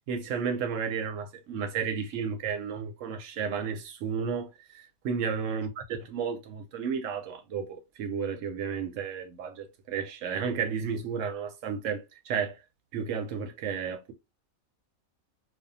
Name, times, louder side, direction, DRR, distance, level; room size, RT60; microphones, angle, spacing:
voice 1, 0.1-5.7 6.0-12.6 12.9-14.1, right 6 dB, 70° right, 0.9 m, -32 dB
2.5 x 2.3 x 2.6 m
omnidirectional pair, 1.5 m